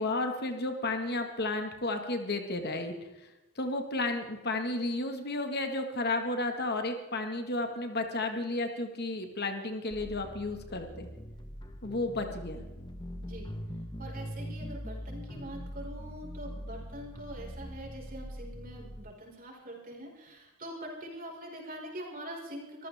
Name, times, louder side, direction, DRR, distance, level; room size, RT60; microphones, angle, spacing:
voice 1, 0.0-2.9 3.5-11.1 11.8-12.6, left 2 dB, 45° left, 6 dB, 1.7 m, -32 dB
sound 1, 9.9-19.0, equal, 20° left, 1.2 m, -42 dB
voice 2, 13.2-13.5 14.0-22.9, right 1 dB, 40° right, -1 dB, 5.2 m, -44 dB
24.5 x 15.0 x 3.6 m, 1.1 s
head